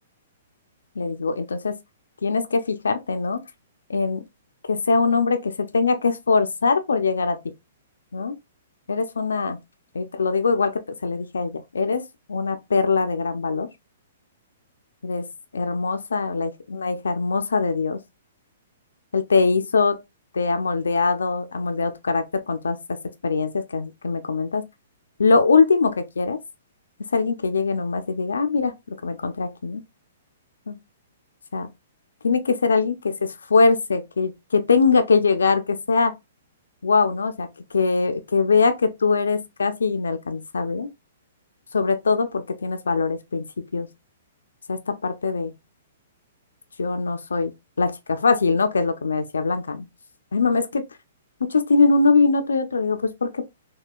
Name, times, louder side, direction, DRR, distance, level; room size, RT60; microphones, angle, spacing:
voice 1, 1.0-1.7 2.2-3.4 3.9-4.2 4.7-7.4 8.1-8.3 8.9-9.6 9.9-12.0 12.3-13.7 15.0-15.2 15.5-18.0 19.1-20.0 20.3-22.8 23.2-24.6 25.2-26.4 27.1-29.8 30.7-30.8 31.5-31.7 32.2-33.1 33.5-36.1 36.8-37.5 37.7-40.9 41.7-43.4 43.7-43.9 44.7-45.5 46.8-49.9 50.3-50.8 51.5-53.4, left 4 dB, 90° left, 0.5 m, -22 dB
3.6 x 2.3 x 2.3 m
hypercardioid pair, 135°, 0 cm